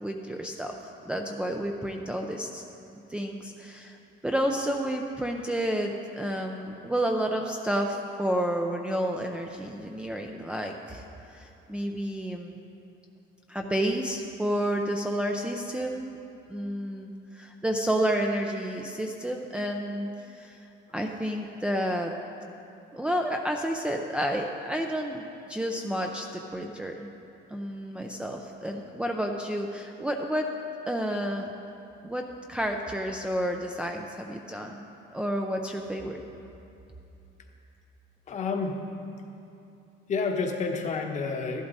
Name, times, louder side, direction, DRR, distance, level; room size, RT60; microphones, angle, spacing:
voice 1, 0.0-0.7 1.1-2.6 3.1-4.0 4.2-11.0 11.3-12.6 13.5-16.2 16.5-20.6 20.9-22.1 22.9-27.1 27.5-30.5 30.9-31.5 32.0-34.9 35.1-36.2, equal, 5° right, 1 dB, 0.5 m, -30 dB
voice 2, 38.3-38.8 40.1-41.6, left 4 dB, 35° left, 3 dB, 1.1 m, -29 dB
13.0 x 11.5 x 4.1 m, 2.8 s
cardioid pair, 140°, 20 cm